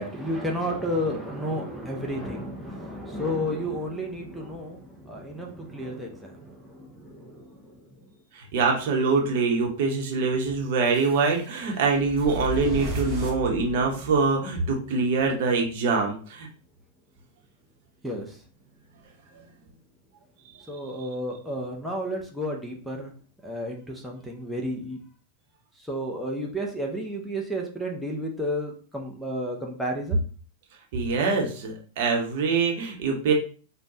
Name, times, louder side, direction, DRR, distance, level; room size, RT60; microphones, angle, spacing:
voice 1, 0.0-7.8 18.0-18.4 20.7-23.1 23.4-25.0 25.9-30.2, equal, ahead, -2 dB, 0.7 m, -32 dB
voice 2, 8.3-16.5 19.3-19.4 20.6-20.7 30.9-33.3, right 4 dB, 50° right, 1 dB, 0.9 m, -24 dB
sound 1, 10.9-14.3, equal, 30° right, 1.0 m, -35 dB
5.1 x 2.2 x 2.7 m, 0.40 s
figure-of-eight pair, 90°, 0 cm